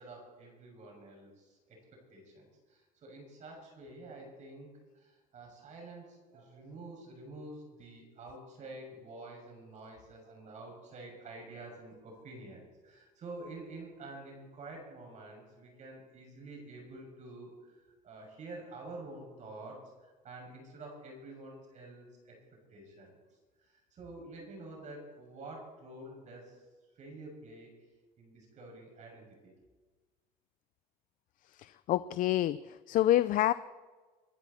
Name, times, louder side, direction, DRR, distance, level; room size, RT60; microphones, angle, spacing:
voice 1, 0.0-1.8 2.1-22.3 22.7-23.2 23.6-26.6 26.9-27.7 28.2-29.5, right 2 dB, 45° right, 0 dB, 6.3 m, -48 dB
voice 2, 31.6-32.6 32.9-33.5, left 13 dB, 55° left, 15 dB, 0.5 m, -27 dB
24.5 x 11.0 x 4.2 m, 1.3 s
cardioid pair, 110°, 16 cm